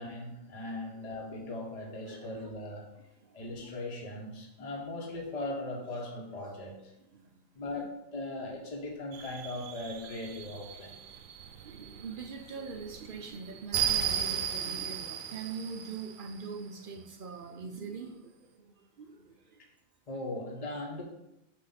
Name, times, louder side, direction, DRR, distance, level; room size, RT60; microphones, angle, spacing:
voice 1, 0.0-2.9 3.3-6.9 7.5-10.9 20.1-21.0, left 2 dB, 30° left, 0 dB, 1.0 m, -39 dB
voice 2, 2.0-2.4 3.2-3.4 7.1-7.4 7.6-7.9 11.6-19.6, right 5 dB, 60° right, 4 dB, 0.6 m, -43 dB
sound 1, 9.1-16.6, right 9 dB, 85° right, 1.0 m, -36 dB
7.3 x 2.5 x 5.6 m, 0.89 s
omnidirectional pair, 1.4 m